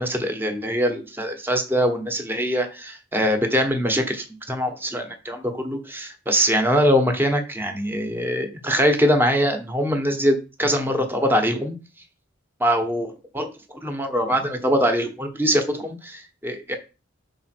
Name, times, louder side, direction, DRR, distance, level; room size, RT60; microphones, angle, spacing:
voice 1, 0.0-11.7 12.6-16.7, equal, 10° right, 5 dB, 1.2 m, -23 dB
5.6 x 4.0 x 6.0 m, 0.31 s
head